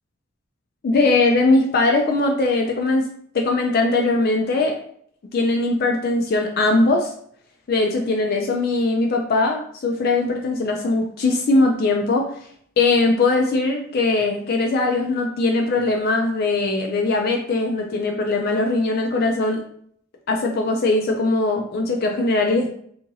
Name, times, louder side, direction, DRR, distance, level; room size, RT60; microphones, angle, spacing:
voice 1, 0.8-3.0 3.3-4.8 5.3-7.1 7.7-12.3 12.8-19.6 20.3-22.7, left 2 dB, 45° left, 2 dB, 0.3 m, -20 dB
2.8 x 2.5 x 2.6 m, 0.63 s
head